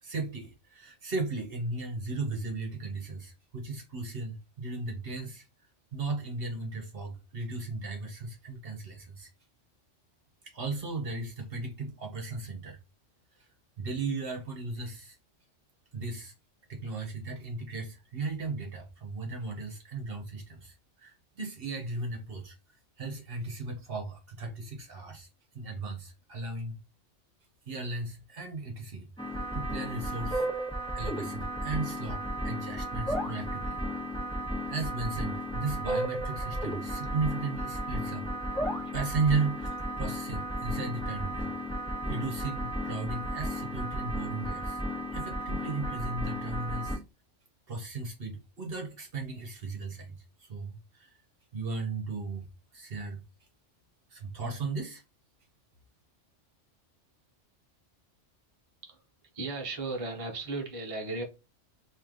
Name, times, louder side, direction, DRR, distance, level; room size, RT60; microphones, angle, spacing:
voice 1, 0.0-5.4 5.9-9.3 10.4-12.8 13.8-15.2 15.9-16.3 16.7-22.6 23.0-25.3 25.5-26.8 27.7-30.5 30.9-33.8 34.7-38.3 38.9-44.8 45.1-47.0 47.7-51.1 51.5-52.5 52.7-53.2 54.1-55.0, right 3 dB, 55° right, 1.1 m, -36 dB
sound 1, 29.2-47.0, equal, 5° left, 1.1 m, -34 dB
voice 2, 59.3-61.2, right 3 dB, 30° right, 0.9 m, -35 dB
3.2 x 2.8 x 3.8 m
omnidirectional pair, 1.2 m